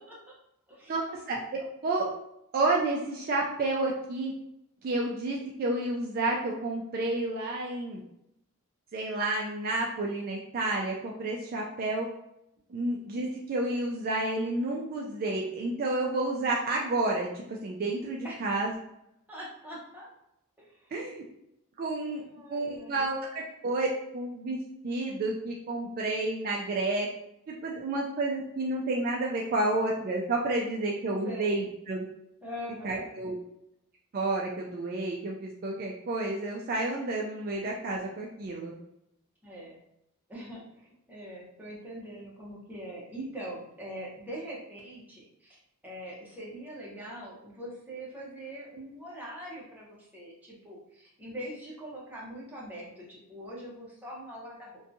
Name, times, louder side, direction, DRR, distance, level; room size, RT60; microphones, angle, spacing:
voice 1, 0.9-1.4 1.8-2.1 2.5-4.3 4.8-8.0 8.9-12.1 12.7-18.7 20.9-21.2 21.8-22.2 22.5-23.9 24.1-27.1 27.6-32.0 32.8-33.4 34.1-38.7, right 2 dB, 40° right, -2 dB, 0.3 m, -30 dB
voice 2, 19.3-20.1 20.6-20.9 22.2-23.0 31.3-31.6 32.4-33.1 39.4-39.8 40.3-54.8, equal, 5° right, -6 dB, 0.7 m, -42 dB
2.6 x 2.2 x 2.6 m, 0.80 s
head